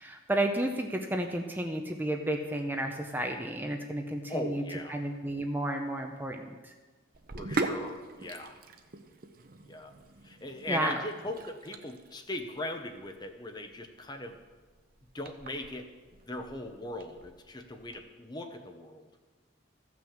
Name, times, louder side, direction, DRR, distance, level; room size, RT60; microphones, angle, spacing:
voice 1, 0.0-4.6 4.9-6.7 10.7-10.9, right 1 dB, 10° right, 3 dB, 0.7 m, -32 dB
voice 2, 4.3-5.0 7.4-8.6 9.7-9.9 10.2-14.4 15.1-15.9 16.3-19.1, left 1 dB, 20° left, 6 dB, 0.8 m, -39 dB
Sink (filling or washing), 7.1-18.0, right 2 dB, 45° right, 0.8 m, -41 dB
14.5 x 6.1 x 7.2 m, 1.3 s
head